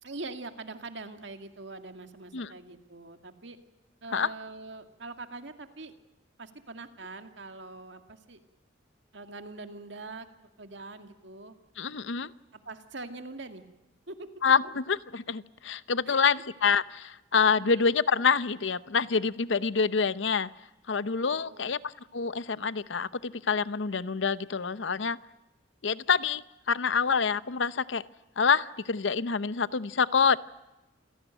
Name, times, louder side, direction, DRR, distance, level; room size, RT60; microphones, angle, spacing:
voice 1, 0.0-3.6 4.0-5.9 6.4-8.4 9.1-10.3 10.6-11.6 12.5-13.6 14.1-14.3 16.1-16.2 17.6-17.9 21.3-21.7, right 3 dB, 65° right, 7 dB, 2.1 m, -43 dB
voice 2, 11.8-12.3 14.4-20.5 20.9-25.2 25.8-28.0 28.4-30.4, left 5 dB, 70° left, 16 dB, 0.8 m, -27 dB
27.5 x 17.0 x 9.1 m, 1.0 s
head